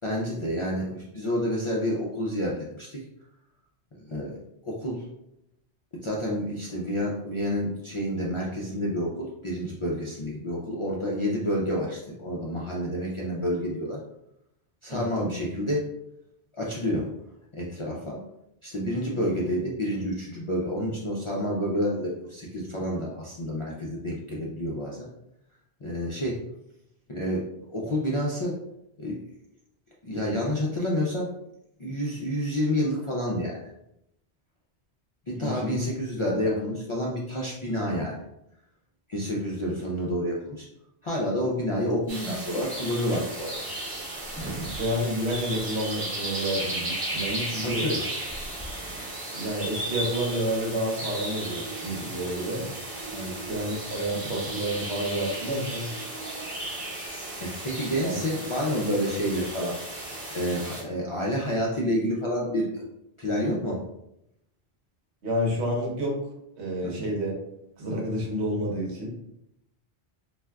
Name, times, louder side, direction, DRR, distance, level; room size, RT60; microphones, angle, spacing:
voice 1, 0.0-3.0 3.9-4.4 4.6-5.1 6.0-14.0 14.8-15.9 16.6-17.1 17.5-18.2 18.6-25.1 25.8-26.4 27.1-28.6 29.0-29.2 30.0-31.3 31.8-33.7 35.3-38.2 39.1-40.7 41.0-43.7 47.6-48.0 52.0-52.1 52.5-52.6 53.1-53.4 57.4-59.8 60.3-62.9 63.2-63.8 66.8-67.1, equal, 50° left, -4 dB, 0.3 m, -29 dB
voice 2, 14.9-15.3 35.4-35.8 36.3-36.6 44.8-47.8 49.3-52.6 53.5-55.9 58.0-58.2 65.2-66.2 66.6-67.3 67.8-69.1, equal, 85° right, -1 dB, 1.1 m, -29 dB
sound 1, 42.1-60.8, right 1 dB, 70° right, 1.3 m, -35 dB
Drawer open or close, 43.8-46.6 47.1-47.2 47.4-49.1, right 1 dB, 10° right, 0.5 m, -42 dB
sound 2, 51.4-56.4, right 4 dB, 50° right, 0.8 m, -45 dB
3.4 x 2.5 x 2.2 m, 0.81 s
omnidirectional pair, 1.1 m